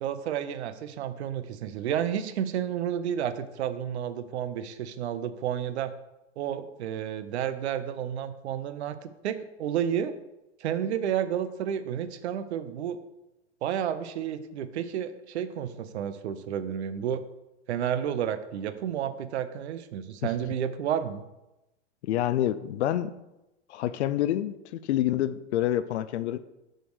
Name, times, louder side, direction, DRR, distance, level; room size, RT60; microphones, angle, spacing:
voice 1, 0.0-5.9 6.4-10.1 10.6-13.0 13.6-17.2 17.7-21.2, right 9 dB, 65° right, 12 dB, 0.7 m, -31 dB
voice 2, 22.0-23.1 23.7-26.4, left 12 dB, 65° left, 13 dB, 0.5 m, -27 dB
6.4 x 4.5 x 4.7 m, 0.95 s
hypercardioid pair, 120°, 36 cm